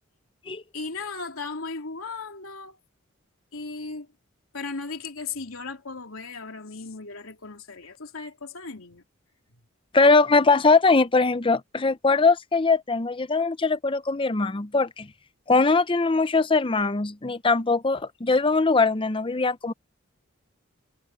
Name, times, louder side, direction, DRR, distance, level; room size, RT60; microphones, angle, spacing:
voice 1, 0.7-2.8 3.5-4.1 4.5-9.0, left 4 dB, 85° left, 3.1 m, -36 dB
voice 2, 9.9-15.1 15.5-19.7, left 3 dB, 25° left, 0.6 m, -21 dB
head